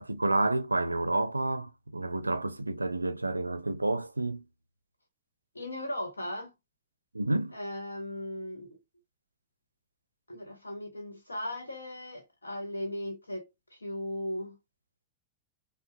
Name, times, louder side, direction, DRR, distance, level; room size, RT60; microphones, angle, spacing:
voice 1, 0.0-4.4 7.1-7.6, right 2 dB, 85° right, 0.4 m, -29 dB
voice 2, 5.5-6.5 7.5-8.8 10.3-14.6, left 1 dB, 80° left, 1.1 m, -37 dB
5.4 x 2.1 x 2.2 m
figure-of-eight pair, 90°, 0 cm